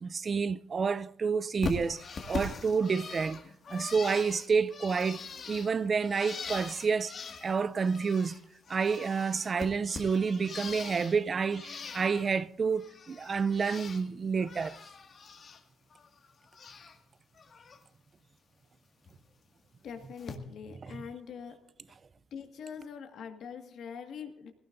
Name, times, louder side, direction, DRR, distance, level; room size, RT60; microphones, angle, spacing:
voice 1, 0.0-3.4 3.7-7.1 7.4-8.4 8.7-14.8 20.8-21.0, right 5 dB, 40° right, 0.5 m, -29 dB
Bird, 1.6-8.4 8.7-11.2 11.5-12.4 12.7-14.0 14.3-15.6 15.9-17.0 17.3-17.8 19.1-19.2 20.2-20.3, left 5 dB, 50° left, 2.0 m, -42 dB
voice 2, 19.8-21.6 21.9-22.0 22.3-24.5, left 7 dB, 70° left, 1.8 m, -43 dB
20.0 x 17.0 x 2.6 m
cardioid pair, 90°, 0 cm